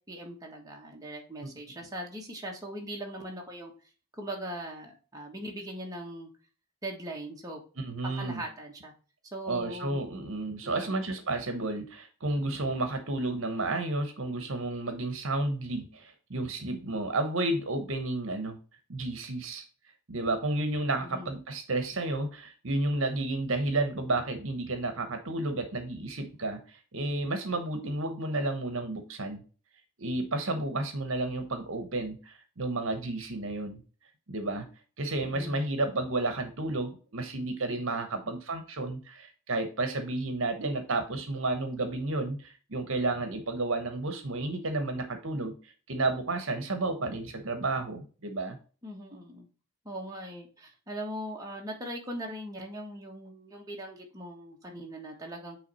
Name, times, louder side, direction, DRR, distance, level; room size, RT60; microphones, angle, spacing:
voice 1, 0.1-3.7 4.1-6.3 6.8-7.6 8.0-8.9 9.3-10.0 10.6-11.0 21.0-21.3 35.2-35.6 38.2-38.3 48.8-49.5 49.8-55.6, right 1 dB, 15° right, -1 dB, 1.5 m, -40 dB
voice 2, 7.8-8.4 9.5-18.6 18.9-19.6 20.1-29.4 30.0-33.8 34.3-34.7 35.0-48.6, right 2 dB, 65° right, 7 dB, 1.1 m, -31 dB
9.2 x 3.4 x 4.2 m, 0.36 s
head